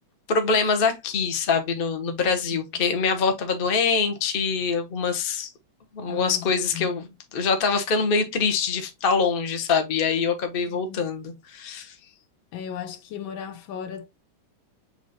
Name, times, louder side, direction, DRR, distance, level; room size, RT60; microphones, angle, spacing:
voice 1, 0.3-5.5 5.9-7.0 7.3-11.9, left 5 dB, 50° left, 0.6 m, -24 dB
voice 2, 6.1-6.5 6.7-7.0 10.7-11.0 12.5-14.1, left 8 dB, 75° left, 1.4 m, -36 dB
6.4 x 3.1 x 2.6 m
omnidirectional pair, 2.2 m